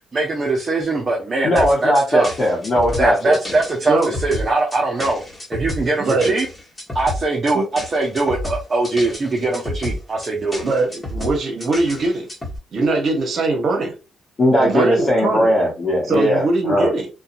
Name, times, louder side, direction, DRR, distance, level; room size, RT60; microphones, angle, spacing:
voice 1, 0.1-2.3 3.0-5.2 5.5-6.5 6.9-10.6, right 2 dB, 35° right, 0.7 m, -21 dB
voice 2, 1.4-3.6 14.4-16.9, equal, 40° left, 1.0 m, -18 dB
sound 1, 1.6-12.6, left 1 dB, 20° left, 1.3 m, -30 dB
voice 3, 6.0-6.4 7.5-7.7 10.6-12.3 12.7-13.9 14.6-15.5 16.1-17.1, right 2 dB, 55° right, 0.9 m, -21 dB
2.7 x 2.3 x 2.5 m
cardioid pair, 90°, 0 cm